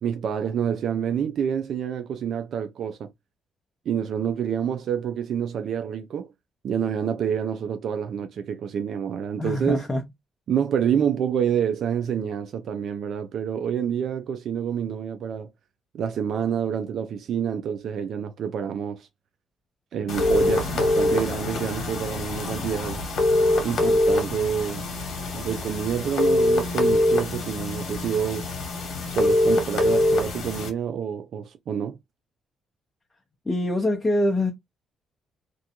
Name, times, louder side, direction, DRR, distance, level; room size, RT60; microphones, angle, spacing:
voice 1, 0.0-3.1 3.9-6.3 6.6-9.8 10.5-15.5 15.9-19.1 19.9-23.0 23.6-24.9 25.3-28.5 29.1-32.0, right 8 dB, 65° right, 0.3 m, -27 dB
voice 2, 9.4-10.0 33.5-34.5, left 1 dB, 20° left, 0.6 m, -24 dB
sound 1, 20.1-30.7, left 2 dB, 70° left, 1.0 m, -24 dB
2.5 x 2.2 x 2.8 m
cardioid pair, 90°, 0 cm